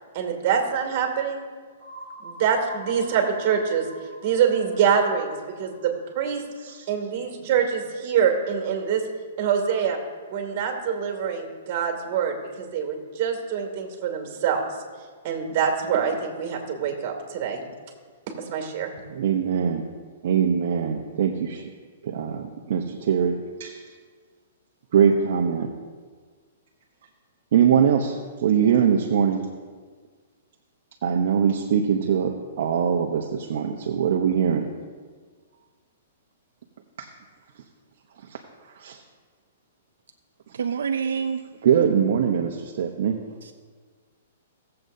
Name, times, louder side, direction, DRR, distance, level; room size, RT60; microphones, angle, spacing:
voice 1, 0.1-1.4 2.2-3.9 4.2-6.4 6.9-9.0 9.4-10.0 10.3-14.6 15.2-17.6 18.3-18.9, right 7 dB, 45° right, 3 dB, 2.4 m, -25 dB
sound 1, 1.8-7.5, right 2 dB, 20° right, 2.7 m, -45 dB
voice 2, 19.1-19.9 20.2-21.7 22.0-23.8 24.9-25.7 27.5-29.5 31.0-34.7 37.0-37.1 38.3-38.4 38.7-39.0 41.6-43.2, right 7 dB, 60° right, 2 dB, 0.8 m, -22 dB
voice 3, 40.5-41.4 43.4-43.5, right 6 dB, 80° right, 8 dB, 0.4 m, -27 dB
17.5 x 7.7 x 2.7 m, 1.5 s
hypercardioid pair, 140°, 0 cm